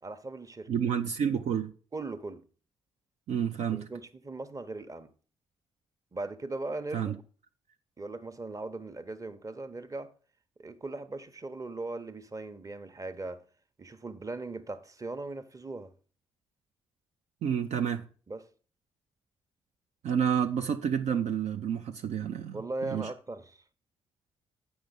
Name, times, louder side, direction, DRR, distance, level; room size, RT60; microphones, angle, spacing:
voice 1, 0.0-0.7 1.9-2.4 3.7-5.1 6.1-7.2 8.0-10.1 10.6-13.4 13.8-15.9 18.3-18.5 22.5-23.6, right 2 dB, 25° right, 0.8 m, -39 dB
voice 2, 0.7-1.7 3.3-3.9 6.9-7.2 17.4-18.1 20.0-23.1, right 8 dB, 55° right, 0.5 m, -29 dB
8.0 x 5.4 x 5.2 m
hypercardioid pair, 40°, 14 cm